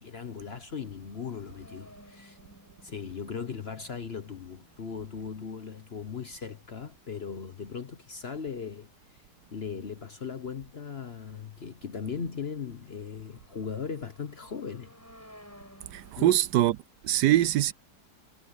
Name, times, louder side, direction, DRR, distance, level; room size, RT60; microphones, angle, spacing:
voice 1, 0.0-2.4 2.8-8.9 9.1-9.2 9.5-14.9 16.2-16.4, left 6 dB, 45° left, 1.0 m, -38 dB
sound 1, 0.8-7.9 8.3-8.4 8.7-9.2 10.1-10.2 10.7-16.1, equal, 10° left, 6.4 m, -57 dB
voice 2, 15.9-16.8 17.0-17.7, right 13 dB, 75° right, 1.2 m, -23 dB
omnidirectional pair, 1.9 m